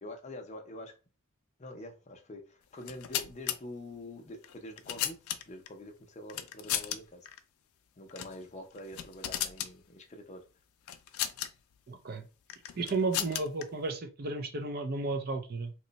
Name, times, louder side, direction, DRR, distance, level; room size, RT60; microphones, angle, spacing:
voice 1, 0.0-0.9 1.6-5.2 5.5-7.3 8.0-10.4, left 1 dB, 30° left, 0.5 m, -45 dB
sound 1, 2.8-3.6 4.4-5.7 6.3-7.0 7.3-7.4 8.1-8.4 8.7-9.7 10.9-11.5 12.5-13.6, left 11 dB, 80° left, 0.4 m, -35 dB
voice 2, 11.9-12.3 12.8-15.7, right 3 dB, 45° right, 0.5 m, -33 dB
3.0 x 2.2 x 3.9 m
head